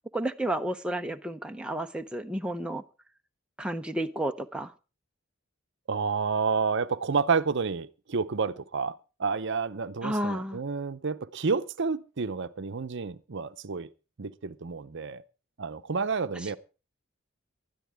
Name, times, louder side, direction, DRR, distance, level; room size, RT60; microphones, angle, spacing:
voice 1, 0.1-2.8 3.6-4.7 10.0-10.6, right 1 dB, 5° right, 0.6 m, -31 dB
voice 2, 5.9-13.9 14.2-15.2 15.6-16.6, right 5 dB, 60° right, 0.7 m, -30 dB
19.5 x 12.0 x 3.5 m
head